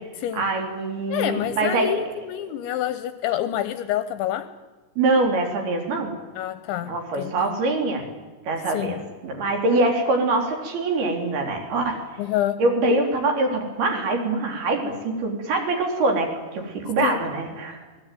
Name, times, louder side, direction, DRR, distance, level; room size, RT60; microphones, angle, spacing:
voice 1, 0.4-1.9 5.0-6.1 6.8-8.1 8.5-12.0 12.6-17.8, right 2 dB, 55° right, 3 dB, 5.1 m, -24 dB
voice 2, 1.1-4.5 6.4-7.6 8.7-9.0 12.2-12.6 17.0-17.2, left 12 dB, 75° left, 12 dB, 2.9 m, -27 dB
25.5 x 19.5 x 9.2 m, 1.3 s
omnidirectional pair, 5.9 m